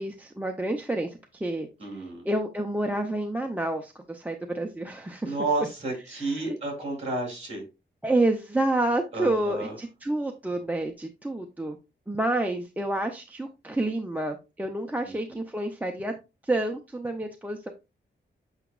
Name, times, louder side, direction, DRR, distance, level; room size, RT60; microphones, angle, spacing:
voice 1, 0.0-5.4 6.1-6.6 8.0-11.8 12.1-16.1 16.4-17.7, right 1 dB, 10° right, 3 dB, 0.5 m, -29 dB
voice 2, 1.8-2.2 5.2-7.6 9.1-9.7 15.1-15.2, right 2 dB, 35° right, 0 dB, 3.7 m, -31 dB
8.0 x 5.8 x 2.3 m, 0.27 s
wide cardioid pair, 175°, 19 cm